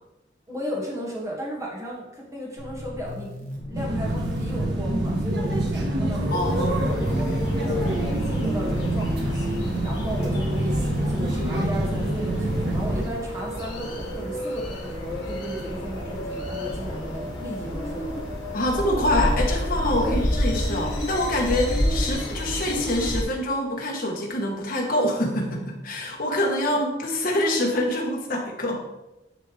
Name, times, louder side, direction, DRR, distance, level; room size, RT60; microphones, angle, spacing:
voice 1, 0.5-18.1 20.0-20.2, equal, 20° right, -3 dB, 1.5 m, -35 dB
sound 1, 2.6-22.1, equal, 45° right, 1.3 m, -37 dB
sound 2, 3.7-13.0, right 1 dB, 70° right, 1.3 m, -26 dB
sound 3, 6.3-23.2, equal, 85° left, 1.6 m, -31 dB
voice 2, 6.3-7.4 18.5-29.0, left 1 dB, 55° left, 0 dB, 1.2 m, -26 dB
9.5 x 3.4 x 3.3 m, 0.95 s
head